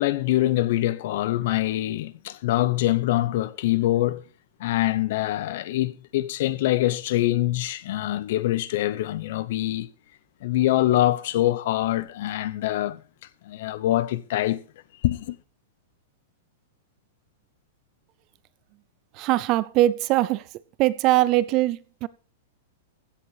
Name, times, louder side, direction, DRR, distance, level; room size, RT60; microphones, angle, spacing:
voice 1, 0.0-4.2 4.6-9.9 10.4-13.0 13.4-14.6 15.0-15.4, left 15 dB, 50° left, 0.7 m, -24 dB
voice 2, 19.1-20.5 20.8-22.1, right 16 dB, 25° right, 0.4 m, -21 dB
16.0 x 7.3 x 4.8 m
supercardioid pair, 175°, 0 cm